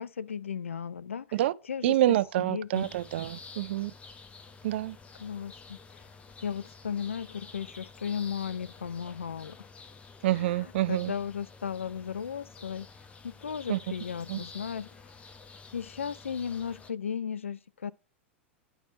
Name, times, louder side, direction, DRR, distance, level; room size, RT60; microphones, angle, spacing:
voice 1, 0.0-1.3 1.7-2.9 5.2-6.0 6.4-9.6 10.3-12.9 13.2-14.9 15.7-17.9, left 7 dB, 85° left, 0.4 m, -35 dB
voice 2, 1.8-3.9 4.6-5.0 10.2-11.1 13.7-13.8 14.3-14.4, right 14 dB, 65° right, 0.4 m, -27 dB
sound 1, 2.7-16.9, left 4 dB, 20° left, 0.7 m, -50 dB
10.0 x 3.4 x 3.1 m
hypercardioid pair, 100°, 7 cm